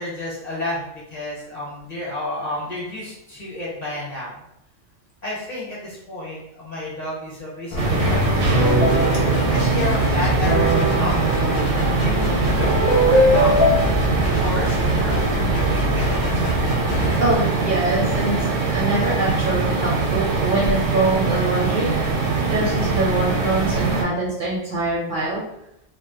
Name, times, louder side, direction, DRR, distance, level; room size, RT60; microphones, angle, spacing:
voice 1, 0.0-4.4 5.2-8.8 9.5-14.0 14.3-16.1, left 1 dB, 40° left, -6 dB, 0.8 m, -31 dB
sound 1, 7.7-17.4, left 1 dB, 70° left, 0.8 m, -25 dB
sound 2, 7.8-13.7, equal, 25° left, 0.4 m, -21 dB
sound 3, 7.8-24.0, right 4 dB, 80° right, 0.9 m, -22 dB
voice 2, 17.2-18.3 18.7-21.9 22.3-25.4, right 2 dB, 60° right, -5 dB, 0.6 m, -23 dB
2.2 x 2.0 x 2.8 m, 0.81 s
omnidirectional pair, 1.2 m